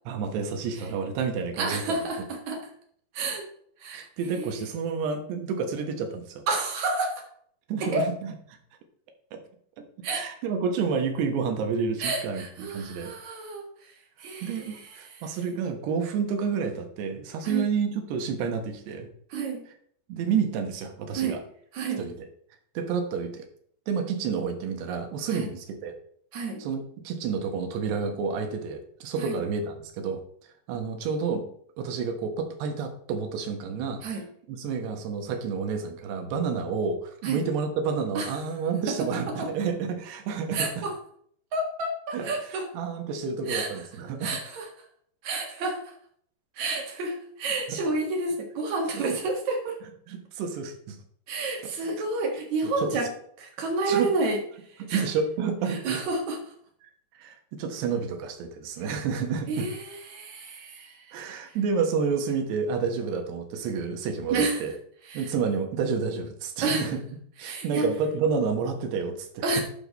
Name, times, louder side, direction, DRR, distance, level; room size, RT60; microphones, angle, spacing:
voice 1, 0.1-2.0 3.9-6.4 7.7-8.3 9.3-9.4 9.8-13.1 14.4-19.1 20.1-21.4 22.0-22.3 22.8-23.5 23.9-25.9 26.6-31.4 31.8-34.0 34.5-40.9 42.1-44.4 47.7-47.8 48.9-49.1 50.1-51.0 51.8-52.1 52.6-53.1 53.9-54.1 54.8-56.0 57.1-59.7 61.1-64.7 65.1-67.0 67.4-69.6, right 5 dB, 75° right, 4 dB, 3.3 m, -30 dB
voice 2, 1.6-2.2 2.5-2.6 3.1-3.4 3.8-4.1 4.4-4.7 6.5-7.2 7.8-8.1 10.0-10.2 12.0-13.6 14.2-14.6 17.4-17.7 19.3-19.6 21.1-21.4 21.7-22.0 25.3-25.5 26.3-26.6 29.2-29.4 34.0-34.3 37.2-37.4 38.1-38.3 39.4-39.5 40.5-40.9 41.5-42.7 43.5-43.7 44.2-44.7 45.2-45.8 46.6-49.8 51.3-53.1 53.4-54.4 54.9-55.0 55.7-56.4 59.5-61.1 64.3-64.6 65.1-65.2 66.6-66.9 67.4-67.9 69.4-69.6, right 3 dB, 55° right, 1 dB, 2.3 m, -29 dB
11.0 x 6.8 x 4.1 m, 0.63 s
omnidirectional pair, 5.1 m